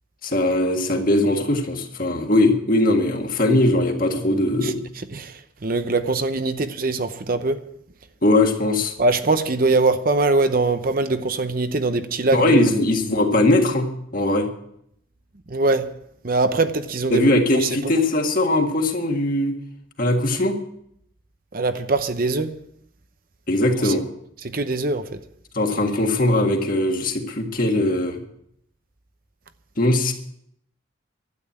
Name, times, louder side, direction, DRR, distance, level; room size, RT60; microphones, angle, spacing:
voice 1, 0.2-4.8 8.2-8.9 12.3-13.9 14.1-14.5 17.1-19.5 20.0-20.6 23.5-24.1 25.5-28.2 29.8-30.1, left 1 dB, 45° left, 1.8 m, -20 dB
voice 2, 5.1-7.6 9.0-12.8 15.5-15.9 16.2-17.9 21.5-22.6 23.8-23.9 24.5-25.2, right 3 dB, 45° right, 0.8 m, -22 dB
12.5 x 9.3 x 8.6 m
head